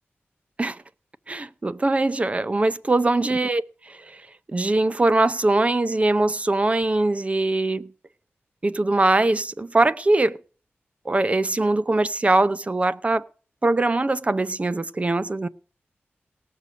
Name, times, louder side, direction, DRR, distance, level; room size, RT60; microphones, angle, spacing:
voice 1, 1.3-3.6 4.5-7.9 8.6-10.4 11.1-13.2 13.6-15.5, right 2 dB, 30° right, 0.6 m, -22 dB
17.5 x 6.8 x 6.1 m
wide cardioid pair, 100°, 4 cm